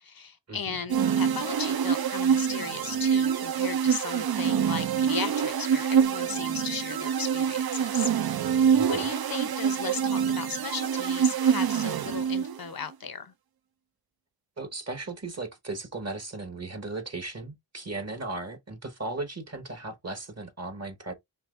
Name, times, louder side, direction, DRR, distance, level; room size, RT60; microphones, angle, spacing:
voice 1, 0.0-8.1 8.9-13.3, left 6 dB, 60° left, 0.7 m, -36 dB
sound 1, 0.9-12.7, right 8 dB, 65° right, 0.5 m, -26 dB
voice 2, 8.7-9.1 14.6-21.1, right 2 dB, 40° right, 1.0 m, -36 dB
5.7 x 2.8 x 2.4 m
wide cardioid pair, 80°, 40 cm